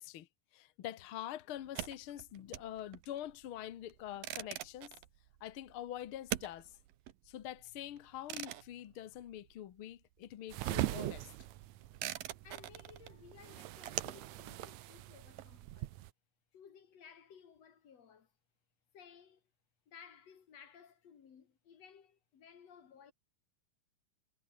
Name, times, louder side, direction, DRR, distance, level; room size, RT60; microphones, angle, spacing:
voice 1, 0.0-4.9 5.4-6.8 7.2-11.3, left 12 dB, 70° left, 1.3 m, -45 dB
sound 1, 1.6-9.9 10.2-16.0, right 14 dB, 90° right, 3.0 m, -45 dB
sound 2, 10.5-16.1, right 15 dB, 70° right, 1.9 m, -42 dB
voice 2, 12.4-15.9 16.5-18.3 18.9-19.4 19.9-23.1, left 7 dB, 50° left, 3.3 m, -58 dB
omnidirectional pair, 3.9 m